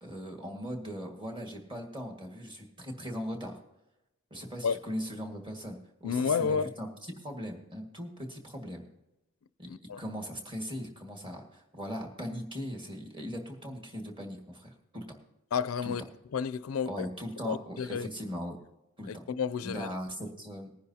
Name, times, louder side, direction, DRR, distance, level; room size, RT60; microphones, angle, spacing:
voice 1, 0.0-3.6 4.3-8.9 9.6-15.2 15.8-16.0 16.9-18.6 19.0-19.2 19.6-20.8, equal, 25° right, 1.8 m, -39 dB
voice 2, 6.0-6.7 9.7-10.0 15.5-16.0 16.3-17.1 17.4-18.1 19.1-19.9, left 6 dB, 85° left, 0.4 m, -31 dB
19.5 x 10.0 x 2.8 m
head